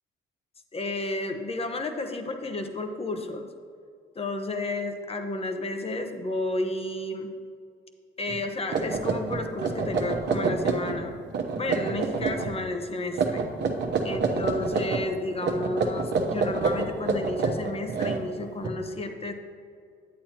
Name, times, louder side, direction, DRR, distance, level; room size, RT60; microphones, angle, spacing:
voice 1, 0.7-3.5 4.1-7.3 8.2-11.2 11.5-13.5 14.0-19.3, left 2 dB, 30° left, 6 dB, 0.9 m, -32 dB
sound 1, 8.3-8.4 8.7-11.0 11.3-12.5 13.1-15.0 15.4-18.7, right 4 dB, 60° right, 1.0 m, -27 dB
9.5 x 8.5 x 2.9 m, 2.3 s
cardioid pair, 90°, 20 cm